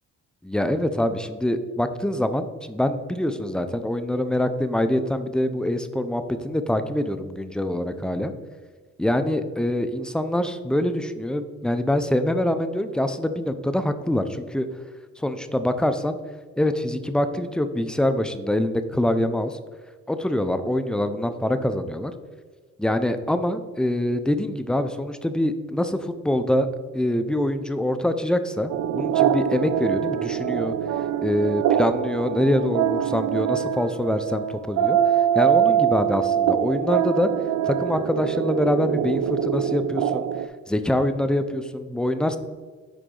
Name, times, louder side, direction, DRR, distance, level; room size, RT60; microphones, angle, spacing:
voice 1, 0.4-8.3 9.0-14.7 15.2-16.2 16.6-19.6 20.1-22.1 22.8-26.7 26.9-30.7 31.2-35.0 35.3-37.3 37.6-40.3 40.7-42.4, left 1 dB, 5° left, 9 dB, 0.5 m, -24 dB
sound 1, 28.7-40.5, right 10 dB, 80° right, 0.5 m, -24 dB
10.0 x 3.9 x 3.8 m, 1.5 s
cardioid pair, 90°, 30 cm